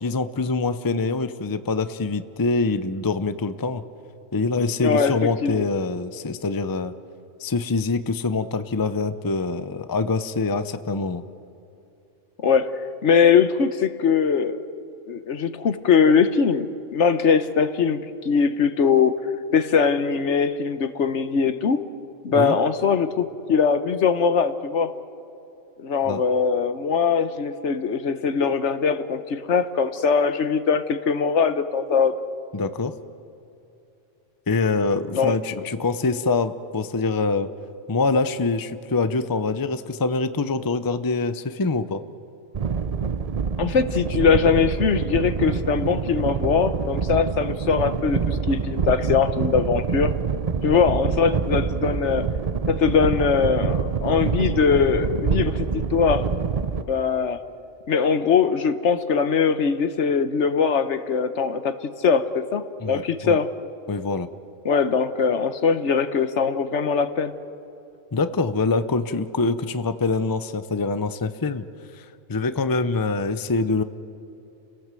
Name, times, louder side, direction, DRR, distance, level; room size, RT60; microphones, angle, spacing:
voice 1, 0.0-3.8 4.3-6.9 7.4-11.2 22.3-22.5 26.0-26.2 32.5-32.9 34.5-37.5 37.9-42.0 62.8-63.4 63.9-64.3 68.1-71.7 71.9-73.8, left 3 dB, 20° left, 11 dB, 0.6 m, -24 dB
voice 2, 4.8-5.2 5.4-5.7 12.4-14.6 15.1-19.2 19.5-21.8 22.2-24.9 25.8-32.1 35.1-35.4 43.6-50.1 50.6-52.3 52.7-56.3 56.9-57.4 57.9-63.5 64.6-67.3, left 6 dB, 65° left, 11 dB, 1.3 m, -21 dB
sound 1, 42.5-56.8, right 6 dB, 40° right, 0.6 m, -26 dB
30.0 x 17.5 x 7.6 m, 2.7 s
omnidirectional pair, 1.3 m